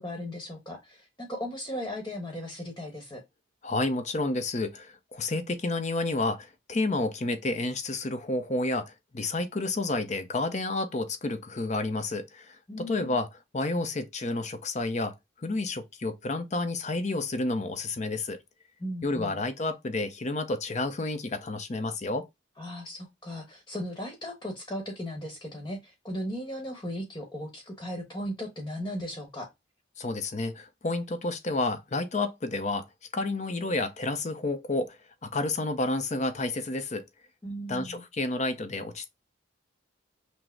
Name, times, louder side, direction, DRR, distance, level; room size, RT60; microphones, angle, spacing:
voice 1, 0.0-3.2 12.7-13.2 18.8-19.4 22.6-29.5 37.4-38.0, equal, 20° left, 1.0 m, -37 dB
voice 2, 3.6-13.3 13.5-15.1 15.4-18.4 19.0-22.3 30.0-32.8 33.1-35.0 35.2-37.0 37.7-39.1, left 2 dB, 35° left, 0.5 m, -30 dB
6.0 x 2.0 x 3.2 m
head